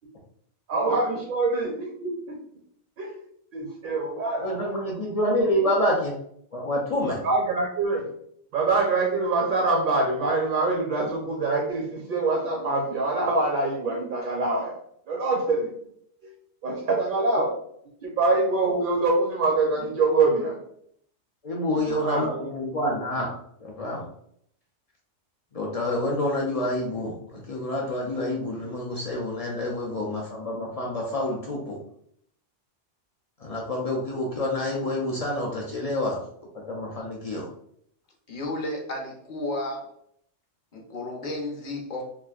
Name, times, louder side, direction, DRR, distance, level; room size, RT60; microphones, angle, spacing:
voice 1, 0.7-2.4 3.0-3.2 3.5-4.6 7.2-8.1 8.5-14.8 15.1-15.7 16.6-17.5 18.0-20.6 21.9-22.4, right 3 dB, 60° right, 0 dB, 0.6 m, -24 dB
voice 2, 4.4-6.2 6.5-7.2 21.4-23.3 23.6-24.1 25.5-31.8 33.4-36.2 36.5-37.5, left 1 dB, 65° left, -2 dB, 0.3 m, -28 dB
voice 3, 38.3-39.9 40.7-42.0, left 1 dB, 45° left, 0 dB, 0.7 m, -32 dB
3.0 x 2.5 x 2.3 m, 0.69 s
omnidirectional pair, 1.2 m